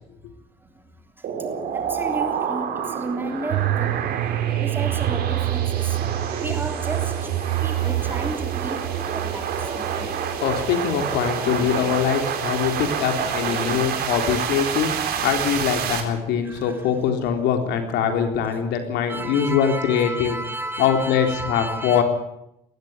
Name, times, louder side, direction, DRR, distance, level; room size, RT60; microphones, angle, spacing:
voice 1, 0.6-4.2 4.6-6.0 6.3-9.7 16.4-16.9 19.1-22.0, right 1 dB, 10° right, 5 dB, 3.3 m, -33 dB
sound 1, 1.2-16.0, right 7 dB, 65° right, 4.0 m, -28 dB
sound 2, 3.2-15.5, right 3 dB, 30° right, 6.8 m, -40 dB
sound 3, 3.5-13.4 13.7-13.8, right 14 dB, 80° right, 0.7 m, -28 dB
voice 2, 10.4-20.4 20.8-22.0, left 8 dB, 90° left, 5 dB, 3.8 m, -23 dB
19.0 x 15.0 x 9.6 m, 0.81 s
cardioid pair, 110°, 17 cm